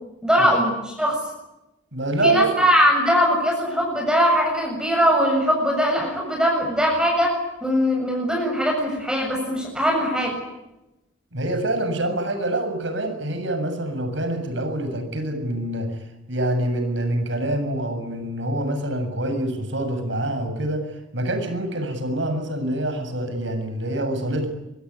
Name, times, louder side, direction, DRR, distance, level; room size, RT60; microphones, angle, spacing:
voice 1, 0.2-1.2 2.2-7.4 7.6-10.3, equal, 5° right, 0 dB, 7.4 m, -21 dB
voice 2, 1.9-2.5 11.3-24.5, right 1 dB, 65° right, 8 dB, 7.4 m, -26 dB
25.5 x 23.5 x 9.8 m, 0.97 s
head